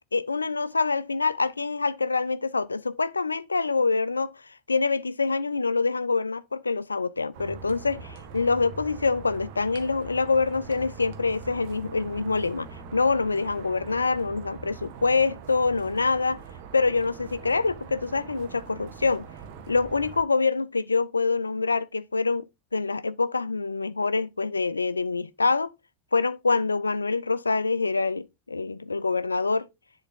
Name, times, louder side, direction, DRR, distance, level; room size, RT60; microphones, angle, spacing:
voice 1, 0.1-4.4 4.7-12.7 12.9-16.4 16.7-19.3 19.7-22.4 22.7-25.7 26.1-29.7, left 4 dB, 85° left, 0.4 m, -25 dB
sound 1, 7.3-20.2, right 5 dB, 55° right, 1.2 m, -43 dB
10.0 x 3.4 x 5.4 m
figure-of-eight pair, 75°, 0 cm